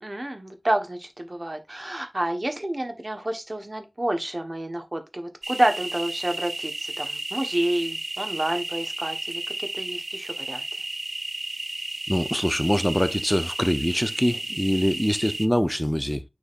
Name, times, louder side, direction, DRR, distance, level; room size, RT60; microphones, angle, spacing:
voice 1, 0.0-10.6, right 1 dB, 35° right, 1.3 m, -29 dB
sound 1, 5.4-15.5, right 2 dB, 65° right, 0.7 m, -33 dB
voice 2, 12.1-16.2, equal, 10° left, 0.6 m, -24 dB
9.9 x 3.9 x 2.6 m
wide cardioid pair, 60°, 0 cm